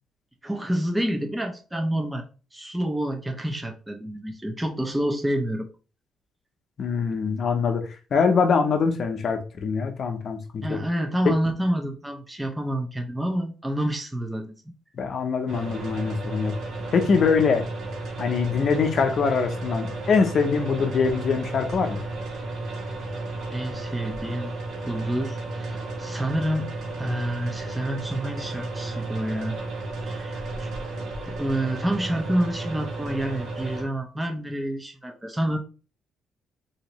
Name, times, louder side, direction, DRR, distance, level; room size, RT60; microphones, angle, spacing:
voice 1, 0.4-2.2 2.5-5.7 10.6-14.5 23.5-24.5 24.8-26.7 27.0-29.6 30.0-30.7 31.3-35.6, right 1 dB, 10° right, 0.7 m, -28 dB
voice 2, 6.8-7.8 8.1-10.8 15.0-16.5 16.9-17.6 18.2-22.0, left 5 dB, 55° left, 0.7 m, -23 dB
sound 1, 15.5-33.8, right 2 dB, 80° right, 1.4 m, -33 dB
3.1 x 2.8 x 3.0 m
cardioid pair, 90°, 0 cm